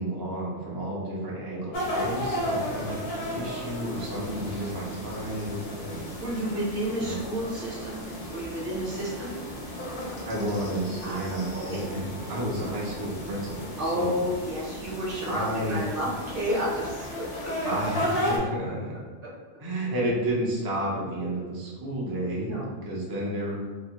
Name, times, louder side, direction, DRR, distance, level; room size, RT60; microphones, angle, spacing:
voice 1, 0.0-3.0 3.3-6.1 7.0-7.2 10.2-14.1 15.3-15.8 17.6-18.9 19.6-23.7, right 1 dB, 35° right, -6 dB, 0.3 m, -31 dB
sound 1, 1.7-18.4, equal, 70° left, 1.0 m, -34 dB
voice 2, 6.2-9.4 11.0-11.2 11.7-11.8 13.8-17.5 22.4-22.7, equal, 50° right, -6 dB, 1.0 m, -31 dB
3.0 x 2.1 x 2.8 m, 1.3 s
omnidirectional pair, 1.3 m